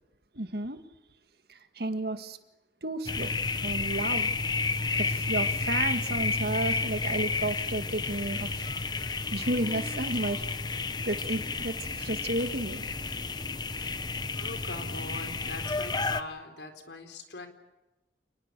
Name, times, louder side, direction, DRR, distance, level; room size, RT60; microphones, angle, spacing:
voice 1, 0.3-0.8 1.5-2.4 2.8-3.3 3.6-4.3 5.0-8.7 9.3-10.4 11.1-12.9, right 1 dB, 60° right, 1.9 m, -32 dB
sound 1, 3.1-16.2, left 4 dB, 25° left, 1.0 m, -31 dB
voice 2, 14.4-17.5, left 2 dB, 80° left, 4.0 m, -42 dB
29.0 x 20.5 x 6.8 m
head